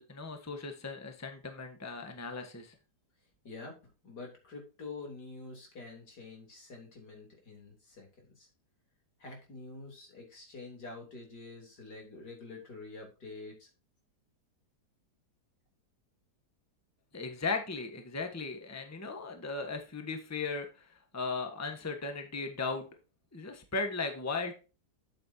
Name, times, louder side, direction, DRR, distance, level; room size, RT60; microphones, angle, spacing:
voice 1, 0.0-2.7 17.1-22.9 23.3-24.5, left 4 dB, 10° left, 5 dB, 1.1 m, -37 dB
voice 2, 3.4-3.8 4.0-8.5 9.2-13.7, left 3 dB, 75° left, 1 dB, 3.8 m, -47 dB
8.6 x 8.1 x 2.8 m, 0.32 s
omnidirectional pair, 1.8 m